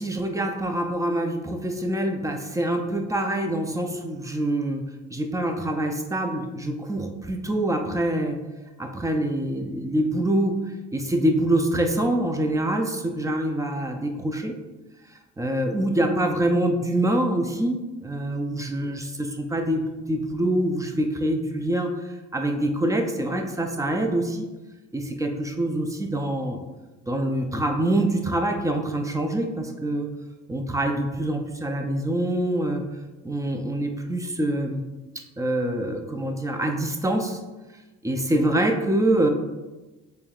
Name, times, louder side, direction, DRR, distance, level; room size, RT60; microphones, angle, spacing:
voice 1, 0.0-4.8 5.1-8.4 8.8-10.6 10.9-14.5 15.4-21.9 22.3-24.4 24.9-26.6 27.1-30.1 30.5-32.8 33.2-34.8 35.4-37.4 38.0-39.3, right 1 dB, 10° right, 4 dB, 0.4 m, -25 dB
4.5 x 3.2 x 2.4 m, 1.1 s
cardioid pair, 90°, 30 cm